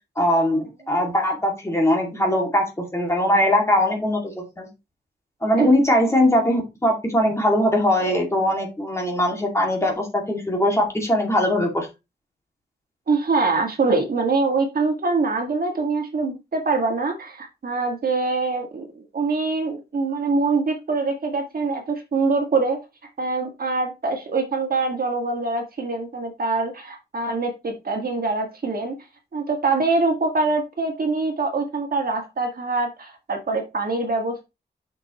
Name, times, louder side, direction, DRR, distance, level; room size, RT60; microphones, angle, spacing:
voice 1, 0.2-4.7 5.4-11.9, left 1 dB, 15° left, 1 dB, 2.3 m, -21 dB
voice 2, 13.1-22.8 23.2-29.0 29.3-34.4, right 3 dB, 55° right, 3 dB, 1.8 m, -24 dB
7.5 x 6.2 x 3.0 m, 0.24 s
wide cardioid pair, 155°, 18 cm